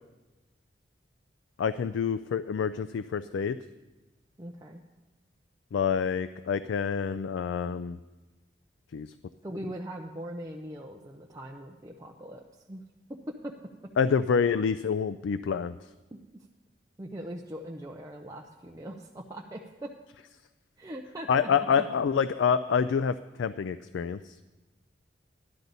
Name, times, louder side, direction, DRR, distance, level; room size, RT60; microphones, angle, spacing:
voice 1, 1.6-3.6 5.7-8.0 8.9-9.1 14.0-15.7 21.3-24.3, left 6 dB, 85° left, 12 dB, 0.3 m, -27 dB
voice 2, 4.4-4.8 9.4-12.8 13.4-13.5 16.1-16.4 17.0-19.9 20.8-21.9, right 1 dB, 20° right, 0 dB, 0.6 m, -41 dB
12.0 x 11.5 x 4.0 m, 1.1 s
head